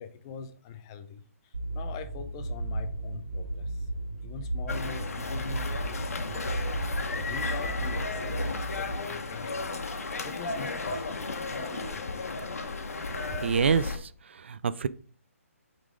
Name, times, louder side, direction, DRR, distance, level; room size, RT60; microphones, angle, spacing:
voice 1, 0.0-3.9 4.2-6.6 6.9-9.7 10.2-12.4, left 6 dB, 15° left, 8 dB, 0.4 m, -44 dB
sound 1, 1.5-8.9, right 1 dB, 75° right, 2.3 m, -34 dB
sound 2, 4.7-14.0, left 3 dB, 80° left, 1.2 m, -34 dB
voice 2, 13.4-14.1 14.4-14.9, right 6 dB, 50° right, 16 dB, 0.3 m, -26 dB
8.0 x 3.8 x 3.7 m, 0.42 s
hypercardioid pair, 170°, 8 cm